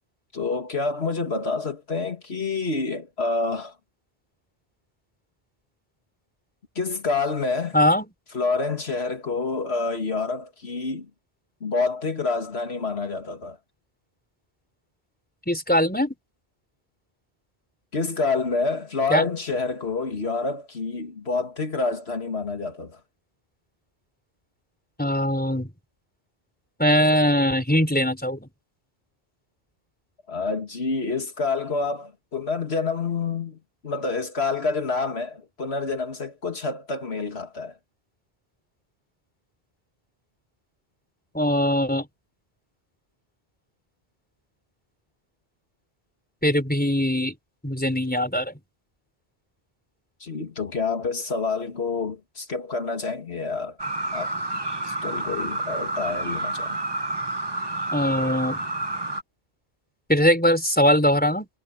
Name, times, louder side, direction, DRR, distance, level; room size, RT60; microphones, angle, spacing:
voice 1, 0.3-3.7 6.8-7.8 8.3-11.1 11.6-13.6 17.9-23.0 30.3-33.6 33.8-37.8 50.2-53.8 54.1-54.3 54.8-56.8, left 4 dB, 75° left, 2.3 m, -28 dB
voice 2, 7.7-8.1 15.5-16.1 19.1-19.2 25.0-25.7 26.8-28.5 41.3-42.1 46.4-47.3 47.6-48.5 57.9-58.6 60.1-61.5, equal, 10° left, 4.9 m, -21 dB
sound 1, 53.8-59.2, right 2 dB, 25° right, 1.3 m, -29 dB
omnidirectional pair, 1.1 m